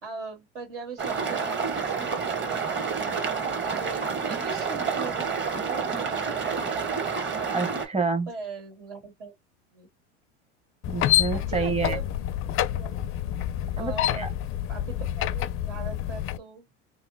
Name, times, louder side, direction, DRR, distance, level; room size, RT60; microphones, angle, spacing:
voice 1, 0.0-7.0 8.3-9.3 9.7-9.9 11.3-12.1 12.7-13.1 13.8-14.3 14.7-16.7, right 4 dB, 80° right, 2.3 m, -41 dB
sound 1, 1.0-7.9, right 5 dB, 30° right, 1.2 m, -29 dB
voice 2, 7.5-8.3 10.9-12.0 13.8-14.3, right 4 dB, 15° right, 0.8 m, -28 dB
sound 2, 10.8-16.4, left 12 dB, 40° left, 0.4 m, -27 dB
3.1 x 2.8 x 2.5 m
hypercardioid pair, 85°, 35 cm